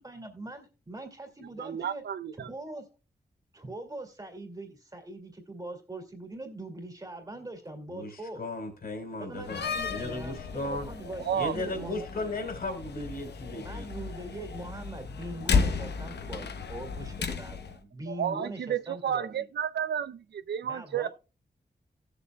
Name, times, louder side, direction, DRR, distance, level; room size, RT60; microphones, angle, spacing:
voice 1, 0.0-2.0 2.4-2.9 3.5-8.4 9.2-12.4 13.6-19.5 20.6-21.1, right 2 dB, 20° right, 2.3 m, -42 dB
voice 2, 1.6-2.5 11.2-11.6 18.1-21.1, right 9 dB, 90° right, 0.5 m, -31 dB
voice 3, 7.9-9.6 9.9-10.9 11.3-13.9, left 2 dB, 65° left, 3.5 m, -36 dB
Slam, 9.4-17.8, left 5 dB, 85° left, 1.0 m, -33 dB
17.0 x 7.0 x 2.3 m
wide cardioid pair, 145°, 17 cm